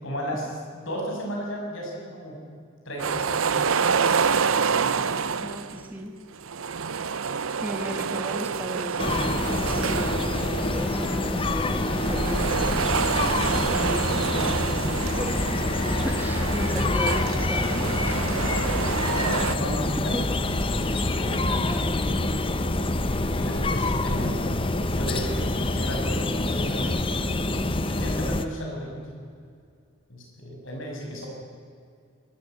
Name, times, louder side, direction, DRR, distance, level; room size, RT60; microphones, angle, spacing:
voice 1, 0.0-2.4 2.8-3.7 5.7-5.8 16.7-16.9 18.9-20.5 20.8-21.5 23.0-24.5 24.9-27.0 27.9-29.1 30.1-31.3, equal, 65° left, -1 dB, 6.7 m, -34 dB
sound 1, 3.0-5.8 6.4-11.2 11.8-19.6, right 6 dB, 70° right, 0.7 m, -27 dB
voice 2, 4.5-6.2 7.3-9.4 9.8-18.3 20.1-20.4 20.9-22.2, equal, 10° right, 4 dB, 1.3 m, -36 dB
sound 2, 9.0-28.4, left 2 dB, 25° left, 0.8 m, -26 dB
sound 3, 10.4-14.5 14.9-18.6, equal, 90° left, 7.0 m, -40 dB
22.5 x 13.5 x 9.1 m, 2.2 s
head